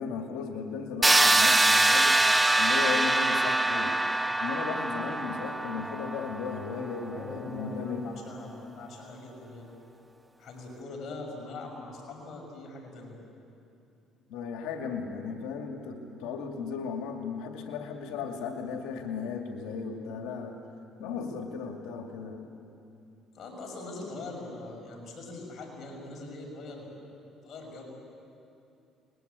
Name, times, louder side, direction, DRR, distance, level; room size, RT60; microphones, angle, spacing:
voice 1, 0.0-2.3 2.5-4.0 4.4-8.1 14.3-20.6 21.0-22.4, left 5 dB, 80° left, 3 dB, 2.3 m, -36 dB
sound 1, 1.0-6.8, right 2 dB, 15° right, 0.8 m, -24 dB
voice 2, 6.7-9.7 10.4-13.2 23.3-26.9 27.4-27.8, left 2 dB, 50° left, 0 dB, 6.1 m, -42 dB
30.0 x 21.5 x 8.3 m, 2.7 s
supercardioid pair, 90°, 0 cm